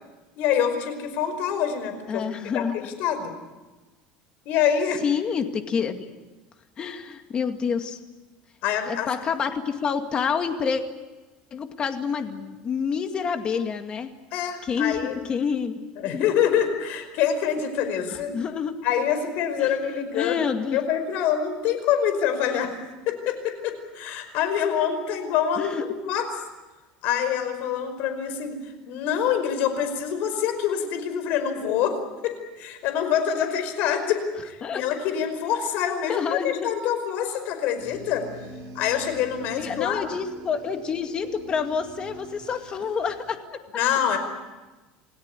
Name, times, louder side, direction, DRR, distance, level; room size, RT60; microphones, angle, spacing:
voice 1, 0.4-2.2 2.5-3.3 4.5-5.0 8.6-9.1 14.3-15.2 16.0-18.3 18.8-20.4 20.7-22.7 23.1-26.4 27.0-38.3 38.8-40.1 43.7-44.2, left 8 dB, 60° left, 8 dB, 5.2 m, -26 dB
voice 2, 2.1-2.8 5.0-6.1 6.8-8.0 8.9-10.8 11.5-14.1 14.6-15.8 16.0-16.2 18.3-18.8 19.6-20.8 25.6-25.8 34.6-34.8 36.1-36.7 39.5-43.6, left 6 dB, 30° left, 7 dB, 2.2 m, -28 dB
sound 1, 37.8-43.3, right 1 dB, 85° right, 4.7 m, -44 dB
28.0 x 18.0 x 9.9 m, 1.2 s
cardioid pair, 150°, 3 cm